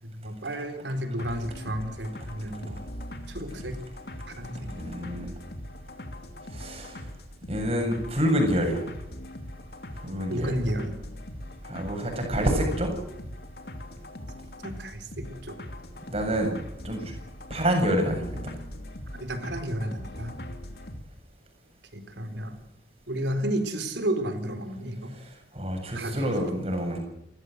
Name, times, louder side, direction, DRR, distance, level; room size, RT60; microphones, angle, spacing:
voice 1, 0.0-2.8 3.3-3.8 4.4-4.8 10.3-10.9 14.6-15.6 19.1-20.4 21.9-22.6 23.1-25.2 25.9-26.3, right 1 dB, 85° right, 8 dB, 4.2 m, -32 dB
sound 1, 1.2-21.0, left 1 dB, 60° left, 2.8 m, -41 dB
voice 2, 4.7-5.3 6.5-7.1 7.5-8.8 10.0-10.5 11.6-12.9 16.1-16.5 16.8-17.1 17.5-18.5 25.1-27.0, equal, 35° right, 3 dB, 7.7 m, -27 dB
29.5 x 15.5 x 8.0 m, 0.84 s
head